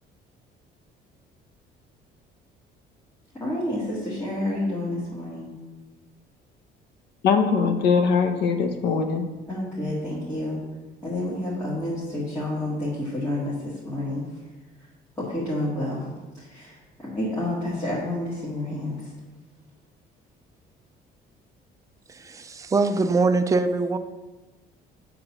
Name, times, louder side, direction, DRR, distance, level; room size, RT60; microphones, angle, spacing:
voice 1, 3.3-5.5 9.5-10.6 11.0-14.5 14.8-14.9 15.2-19.1, left 1 dB, 15° left, -10 dB, 1.8 m, -29 dB
voice 2, 7.2-9.3, left 5 dB, 70° left, 6 dB, 0.9 m, -21 dB
voice 3, 22.1-24.0, right 3 dB, 20° right, 8 dB, 0.4 m, -23 dB
7.9 x 3.8 x 5.9 m, 1.2 s
cardioid pair, 155°, 18 cm